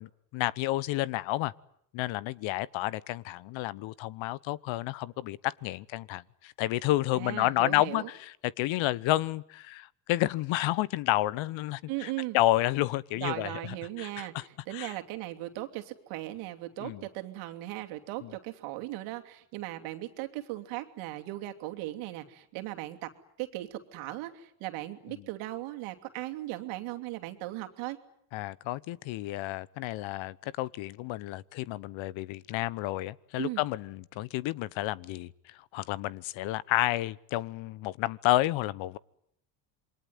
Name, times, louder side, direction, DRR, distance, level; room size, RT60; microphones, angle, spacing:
voice 1, 0.0-1.5 1.9-13.5 14.0-14.4 14.7-14.9 16.8-17.0 18.2-18.3 28.3-39.0, left 16 dB, 65° left, 1.1 m, -30 dB
voice 2, 7.1-8.1 11.9-12.4 13.2-23.1 23.4-28.0 33.4-33.6, right 16 dB, 75° right, 2.9 m, -38 dB
27.5 x 22.0 x 9.6 m
supercardioid pair, 75°, 50 cm